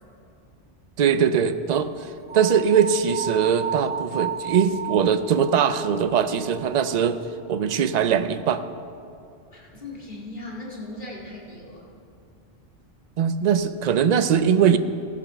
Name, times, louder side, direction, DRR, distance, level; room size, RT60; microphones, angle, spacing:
voice 1, 1.0-1.9 2.3-7.2 7.5-8.6 13.2-14.8, right 7 dB, 50° right, 11 dB, 0.5 m, -21 dB
sound 1, 2.3-7.4, right 7 dB, 10° right, 0.8 m, -34 dB
voice 2, 9.5-11.8, left 2 dB, 50° left, -4 dB, 2.2 m, -38 dB
16.0 x 7.2 x 5.7 m, 2.5 s
omnidirectional pair, 1.0 m